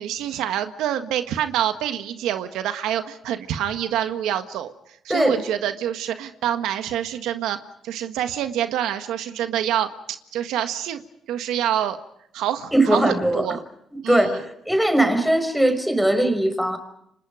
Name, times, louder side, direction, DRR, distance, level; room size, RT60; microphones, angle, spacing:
voice 1, 0.0-4.7 5.0-7.6 7.8-11.0 11.3-12.0 12.3-13.6 14.0-14.4, right 10 dB, 90° right, 8 dB, 1.6 m, -26 dB
voice 2, 12.7-13.5 14.1-16.8, right 1 dB, ahead, 8 dB, 5.6 m, -20 dB
29.5 x 25.5 x 5.0 m, 0.75 s
cardioid pair, 90°, 0 cm